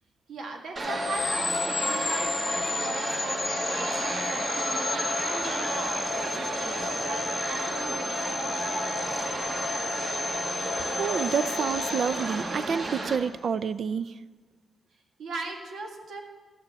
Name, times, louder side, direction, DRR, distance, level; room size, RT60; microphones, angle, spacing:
voice 1, 0.3-8.7 9.1-9.2 15.2-16.2, right 3 dB, 85° right, 2 dB, 2.0 m, -39 dB
sound 1, 0.8-13.2, right 2 dB, 45° right, 1.5 m, -32 dB
sound 2, 0.9-13.0, left 5 dB, 40° left, 0.5 m, -33 dB
voice 2, 11.0-14.2, right 6 dB, 60° right, 15 dB, 0.4 m, -28 dB
14.0 x 6.8 x 8.1 m, 1.4 s
wide cardioid pair, 130°, 0 cm